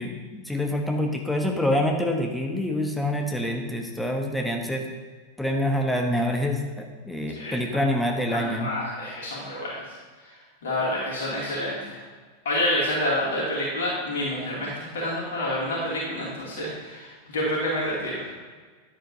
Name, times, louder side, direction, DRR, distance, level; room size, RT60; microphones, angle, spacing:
voice 1, 0.0-4.9 5.4-8.7, left 1 dB, 5° left, 2 dB, 1.1 m, -26 dB
voice 2, 8.3-9.7 10.6-12.0 12.4-18.3, left 1 dB, 60° left, -6 dB, 2.5 m, -28 dB
10.5 x 7.5 x 2.7 m, 1.4 s
figure-of-eight pair, 90°, 0 cm